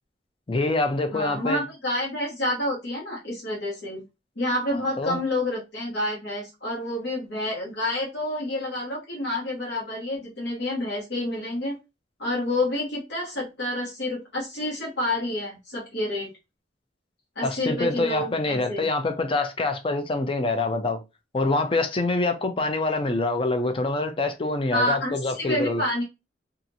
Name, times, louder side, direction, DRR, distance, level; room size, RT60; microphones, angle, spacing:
voice 1, 0.5-1.6 5.0-5.2 17.4-21.0 21.3-25.8, left 2 dB, 30° left, 0.5 m, -25 dB
voice 2, 1.1-4.0 4.4-11.8 12.2-16.3 17.3-18.9 24.7-26.0, left 1 dB, 70° left, 1.1 m, -28 dB
2.8 x 2.4 x 2.6 m
head